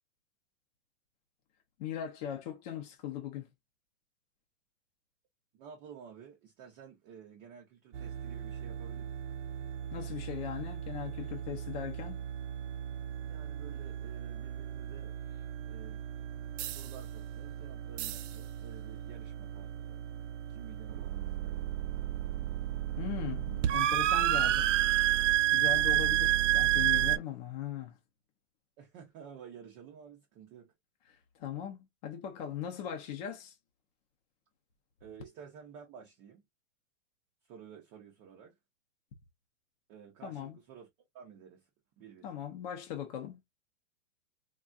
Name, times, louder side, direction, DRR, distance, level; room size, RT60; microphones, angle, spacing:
voice 1, 1.8-3.5 9.9-12.3 23.0-24.7 25.5-28.0 31.1-33.5 40.2-40.6 42.2-43.4, left 10 dB, 35° left, 0.6 m, -39 dB
voice 2, 5.5-9.1 13.2-15.2 15.7-16.3 16.7-20.0 20.5-21.8 28.8-30.7 35.0-36.4 37.5-38.6 39.9-40.9 41.1-41.7 42.0-42.3, right 8 dB, 20° right, 0.5 m, -52 dB
sound 1, 7.9-27.2, right 13 dB, 75° right, 0.5 m, -32 dB
3.4 x 2.2 x 2.3 m
hypercardioid pair, 155°, 36 cm